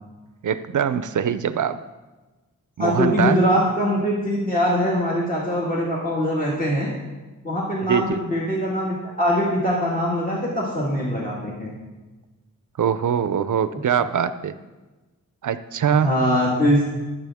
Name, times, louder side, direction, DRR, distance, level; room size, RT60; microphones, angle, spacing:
voice 1, 0.4-1.8 2.8-3.4 7.8-8.2 12.8-14.5 15.4-16.1, right 8 dB, 70° right, 12 dB, 0.6 m, -22 dB
voice 2, 2.8-6.9 7.4-11.7 15.9-16.8, equal, 25° left, -5 dB, 1.9 m, -22 dB
19.5 x 7.3 x 3.5 m, 1.2 s
wide cardioid pair, 145°, 32 cm